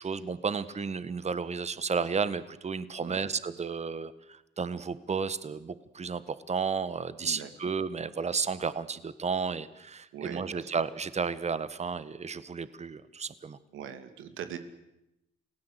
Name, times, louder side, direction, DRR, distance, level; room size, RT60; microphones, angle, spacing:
voice 1, 0.0-13.6, right 5 dB, 35° right, 15 dB, 1.5 m, -33 dB
voice 2, 3.0-3.3 7.2-7.5 10.1-10.7 13.7-14.6, right 9 dB, 85° right, 9 dB, 2.6 m, -41 dB
28.0 x 18.0 x 8.3 m, 0.88 s
cardioid pair, 90°, 20 cm